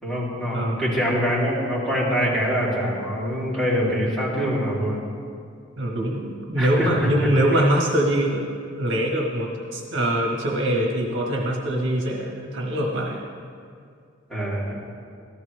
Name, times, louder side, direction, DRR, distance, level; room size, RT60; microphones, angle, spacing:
voice 1, 0.0-5.0 6.6-7.3 7.5-7.6 14.3-14.7, equal, ahead, -9 dB, 3.1 m, -24 dB
voice 2, 0.5-0.9 5.8-8.5 8.8-13.2, right 1 dB, 60° right, 0 dB, 1.2 m, -23 dB
14.5 x 12.0 x 3.3 m, 2.2 s
head